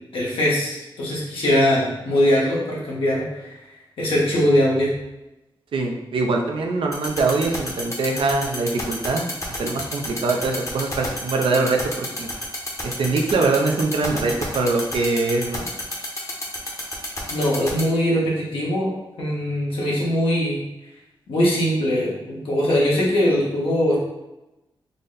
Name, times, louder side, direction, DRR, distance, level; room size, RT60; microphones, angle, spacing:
voice 1, 0.1-3.5 4.0-4.9 17.3-18.9 19.2-20.6 21.3-24.0, equal, 90° left, -5 dB, 1.2 m, -21 dB
voice 2, 5.7-9.2 9.6-12.3 13.0-15.7, right 3 dB, 75° right, 2 dB, 0.5 m, -23 dB
sound 1, 6.9-17.8, left 2 dB, 35° left, 0.9 m, -29 dB
3.9 x 2.1 x 3.9 m, 0.96 s
wide cardioid pair, 85°, 9 cm